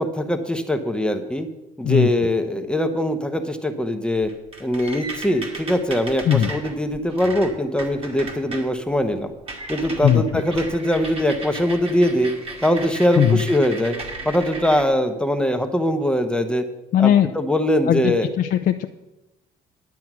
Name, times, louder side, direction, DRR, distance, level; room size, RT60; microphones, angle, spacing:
voice 1, 0.0-1.5 1.8-4.3 4.6-9.3 9.7-12.3 12.6-13.9 14.2-16.6 17.0-18.3, equal, 5° left, 6 dB, 0.9 m, -22 dB
sound 1, 4.3-8.7 9.0-9.2 9.5-14.8, right 2 dB, 35° right, 2.2 m, -35 dB
voice 2, 16.9-17.3 17.8-18.9, left 10 dB, 55° left, 6 dB, 0.6 m, -18 dB
10.5 x 8.4 x 6.1 m, 0.99 s
cardioid pair, 110°, 17 cm